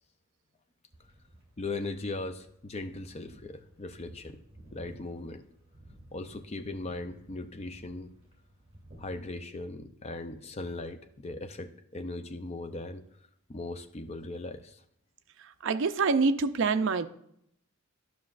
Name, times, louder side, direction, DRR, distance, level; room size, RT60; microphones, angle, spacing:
sound 1, 0.9-9.2, right 1 dB, 25° right, 2.8 m, -55 dB
voice 1, 1.6-4.4 4.7-5.4 6.1-8.1 9.0-13.0 13.5-14.8, left 2 dB, 30° left, 0.5 m, -38 dB
voice 2, 15.6-17.1, right 4 dB, 60° right, 0.4 m, -25 dB
11.5 x 5.9 x 2.5 m
head